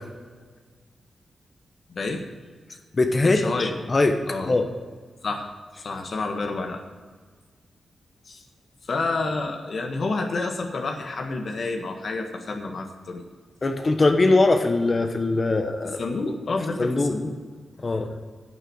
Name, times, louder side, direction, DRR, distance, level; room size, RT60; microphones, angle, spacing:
voice 1, 1.9-2.2 3.2-3.7 4.3-4.6 5.2-5.5 5.8-6.8 8.2-8.4 8.8-13.2 16.0-17.3, left 3 dB, 60° left, 3 dB, 1.5 m, -29 dB
voice 2, 2.9-4.1 4.5-4.7 13.6-16.0 16.8-17.2 17.8-18.1, left 2 dB, 35° left, 5 dB, 1.1 m, -21 dB
11.0 x 6.7 x 7.9 m, 1.5 s
cardioid pair, 85°, 0 cm